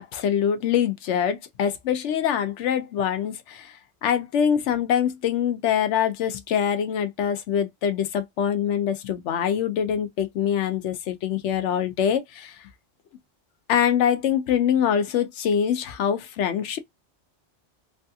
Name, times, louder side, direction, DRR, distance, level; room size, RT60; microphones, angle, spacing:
voice 1, 0.0-3.7 4.0-12.6 13.7-16.8, left 8 dB, 85° left, 1.0 m, -24 dB
3.3 x 2.3 x 2.7 m
omnidirectional pair, 1.2 m